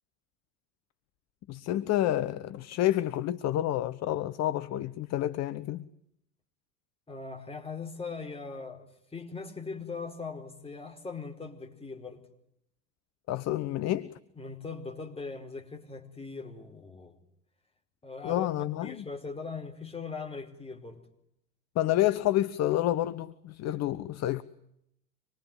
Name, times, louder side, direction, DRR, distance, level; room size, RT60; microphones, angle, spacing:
voice 1, 1.5-5.9 13.3-14.1 18.2-19.0 21.7-24.4, left 13 dB, 35° left, 1.0 m, -29 dB
voice 2, 7.1-12.2 14.3-17.2 18.0-18.5 18.8-21.0, left 4 dB, 10° left, 4.9 m, -40 dB
25.5 x 23.0 x 9.3 m
figure-of-eight pair, 75°, 47 cm